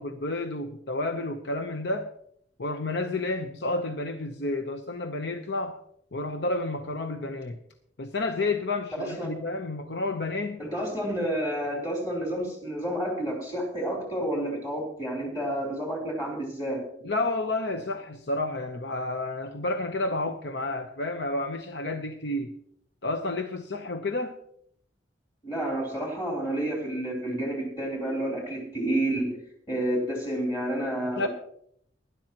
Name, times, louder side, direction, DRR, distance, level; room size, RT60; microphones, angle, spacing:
voice 1, 0.0-2.1 2.6-5.8 6.1-7.6 8.0-10.6 17.0-22.5 23.0-24.4 31.2-31.3, left 2 dB, 65° left, 6 dB, 0.8 m, -30 dB
voice 2, 9.0-9.3 10.6-16.8 25.4-29.4 29.7-31.3, right 1 dB, 20° left, -2 dB, 3.5 m, -30 dB
19.5 x 11.0 x 2.9 m, 0.68 s
head